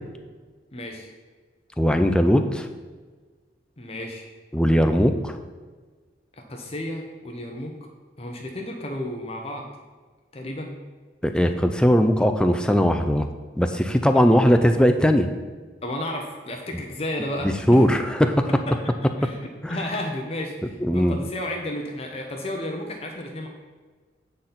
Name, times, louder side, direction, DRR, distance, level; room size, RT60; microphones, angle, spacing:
voice 1, 0.7-1.1 3.8-4.2 6.5-7.7 8.2-9.7 10.3-10.7 14.1-14.4 15.8-17.8 19.2-19.4 19.7-23.5, left 1 dB, 35° left, 2 dB, 0.9 m, -32 dB
voice 2, 1.8-2.7 4.5-5.4 11.2-13.3 13.6-15.3 17.4-18.5 19.6-19.8 20.8-21.2, equal, 5° left, 7 dB, 0.4 m, -19 dB
8.6 x 4.0 x 5.8 m, 1.4 s
head